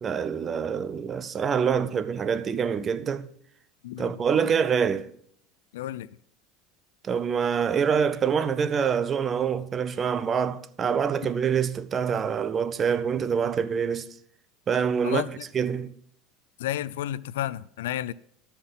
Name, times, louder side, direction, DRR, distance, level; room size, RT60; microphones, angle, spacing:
voice 1, 0.0-3.3 4.0-5.1 7.0-14.1 14.7-15.9, right 7 dB, 30° right, 0.6 m, -26 dB
voice 2, 5.7-6.1 15.0-15.4 16.6-18.1, left 12 dB, 85° left, 0.3 m, -31 dB
13.0 x 5.7 x 5.6 m
supercardioid pair, 100°, 0 cm